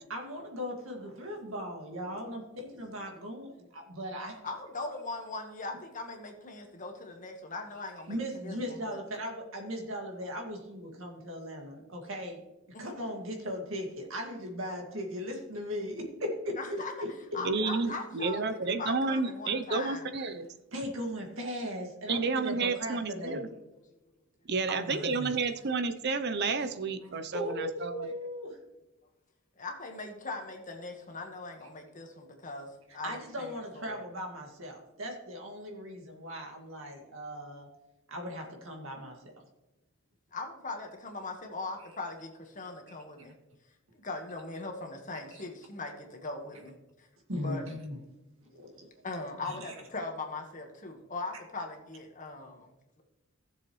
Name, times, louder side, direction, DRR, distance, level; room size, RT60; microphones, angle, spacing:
voice 1, 0.0-4.4 8.1-12.4 12.8-16.0 16.4-16.8 20.2-20.3 20.7-23.4 24.7-25.3 27.3-28.6 33.0-37.7 38.1-39.2 45.3-45.4 47.3-48.0 48.5-48.9 49.5-49.7, equal, 70° right, 2 dB, 2.1 m, -38 dB
voice 2, 4.4-9.0 12.7-12.9 16.6-16.9 17.3-20.1 29.6-34.0 40.3-43.3 43.9-47.1 47.4-47.6 48.5-48.6 49.0-53.0, left 3 dB, 40° left, 3 dB, 1.5 m, -40 dB
voice 3, 17.4-20.5 22.1-23.5 24.5-28.1, right 4 dB, 55° right, 10 dB, 0.7 m, -31 dB
16.0 x 7.0 x 3.2 m, 1.0 s
head